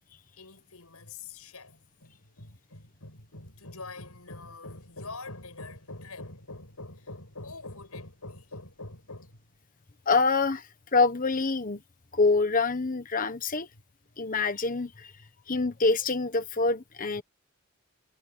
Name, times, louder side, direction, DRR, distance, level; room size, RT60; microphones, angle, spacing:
voice 1, 0.4-9.4 13.7-13.8, left 2 dB, 80° left, 6.3 m, -44 dB
voice 2, 10.1-11.8 12.1-13.7 14.2-15.1 15.5-17.2, left 3 dB, 35° left, 1.2 m, -26 dB
head